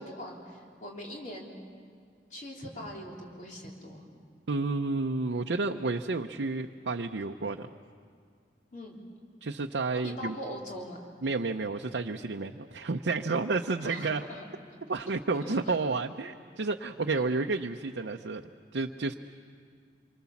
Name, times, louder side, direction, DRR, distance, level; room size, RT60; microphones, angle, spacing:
voice 1, 0.0-1.6 2.3-4.0 5.7-5.8 8.7-9.0 10.0-11.0 13.8-14.4 15.4-15.6, left 1 dB, 45° left, -2 dB, 3.6 m, -42 dB
voice 2, 4.5-7.7 9.4-10.4 11.2-14.2 14.9-18.5 18.7-19.1, right 3 dB, 85° right, 3 dB, 0.7 m, -31 dB
26.5 x 24.0 x 7.2 m, 2.1 s
head